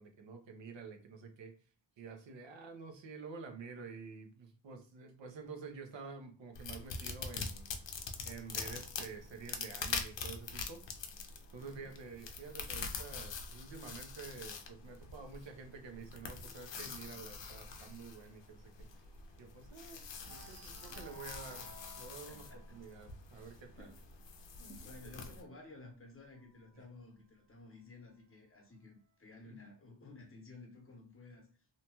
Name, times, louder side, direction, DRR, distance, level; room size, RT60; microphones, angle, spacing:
voice 1, 0.0-1.5 2.0-7.7 8.2-10.8 11.5-18.7 19.4-21.7 22.0-23.9 25.4-25.6 29.5-29.6, right 5 dB, 90° right, 0.7 m, -49 dB
sound 1, 6.5-25.4, left 5 dB, 90° left, 0.6 m, -45 dB
sound 2, 11.5-15.1 15.5-15.8 16.1-16.2 16.6-19.8 20.2-26.7 27.6-28.6, right 1 dB, 40° right, 0.6 m, -60 dB
voice 2, 11.6-11.9 22.3-22.8 23.7-24.0 24.6-31.5, left 2 dB, 30° left, 0.7 m, -54 dB
2.8 x 2.2 x 2.9 m
wide cardioid pair, 175°, 43 cm